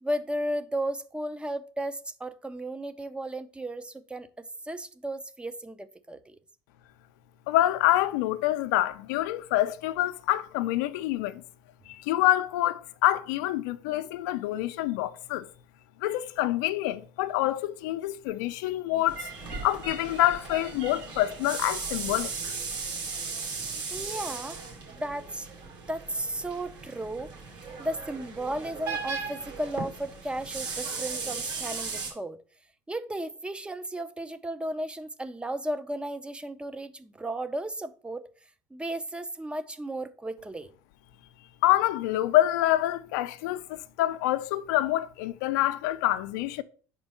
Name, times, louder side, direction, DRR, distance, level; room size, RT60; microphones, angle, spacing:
voice 1, 0.0-6.4 23.9-24.6 24.9-27.3 27.8-32.4 32.9-38.3 38.7-40.7, right 1 dB, 10° right, 0.5 m, -34 dB
voice 2, 7.5-11.4 11.9-15.5 16.0-22.6 41.6-46.6, left 15 dB, 80° left, 0.5 m, -26 dB
sound 1, 19.1-32.1, right 4 dB, 55° right, 2.5 m, -37 dB
5.4 x 4.4 x 5.3 m
supercardioid pair, 95°, 9 cm